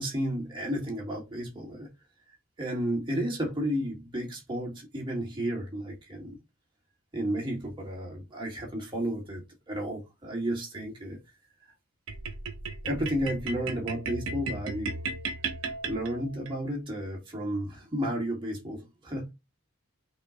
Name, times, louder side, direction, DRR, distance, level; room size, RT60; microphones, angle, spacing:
voice 1, 0.0-1.9 2.6-6.4 7.1-11.2 12.8-14.9 15.9-19.3, equal, 25° right, 1.7 m, -32 dB
sound 1, 12.1-16.5, right 3 dB, 65° right, 0.9 m, -35 dB
5.8 x 2.3 x 3.7 m
head